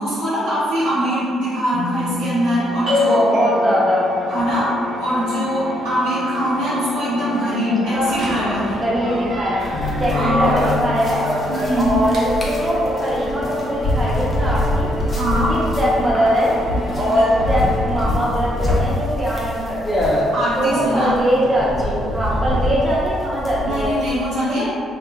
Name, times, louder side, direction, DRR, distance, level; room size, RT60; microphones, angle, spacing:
voice 1, 0.0-3.2 4.3-8.8 10.1-10.5 11.5-11.9 15.1-15.5 20.3-21.1 23.6-24.7, equal, 80° right, -12 dB, 1.2 m, -22 dB
sound 1, 1.7-18.5, left 2 dB, 70° left, 0.8 m, -30 dB
sound 2, 2.9-18.9, left 2 dB, 55° right, 0.7 m, -29 dB
voice 2, 3.1-4.1 7.9-8.2 8.8-9.6 10.0-11.2 11.8-14.9 15.5-16.5 17.0-20.1 20.6-23.9, equal, 25° right, -8 dB, 0.8 m, -21 dB
sound 3, 9.6-24.1, left 1 dB, 35° left, 0.7 m, -25 dB
3.1 x 2.3 x 2.4 m, 2.3 s
hypercardioid pair, 50°, 0 cm